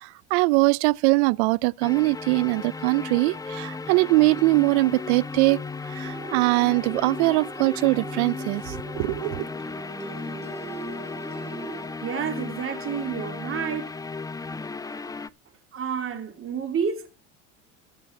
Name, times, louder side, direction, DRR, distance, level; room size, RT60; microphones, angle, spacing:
voice 1, 0.0-5.6 5.9-9.5, right 23 dB, 70° right, 0.5 m, -22 dB
sound 1, 1.8-15.3, left 4 dB, 10° left, 0.6 m, -35 dB
sound 2, 6.0-11.9, right 4 dB, 20° right, 3.0 m, -40 dB
voice 2, 12.0-14.0 15.7-17.1, right 6 dB, 35° right, 2.8 m, -29 dB
14.0 x 8.3 x 5.6 m
hypercardioid pair, 80°, 35 cm